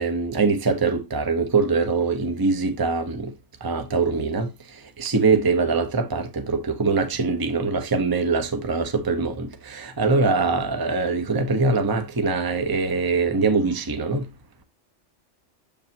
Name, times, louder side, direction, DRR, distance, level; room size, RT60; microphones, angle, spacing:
voice 1, 0.0-3.3 3.6-4.5 5.0-14.3, right 4 dB, 20° right, 0.8 m, -23 dB
6.9 x 6.9 x 2.9 m
omnidirectional pair, 1.2 m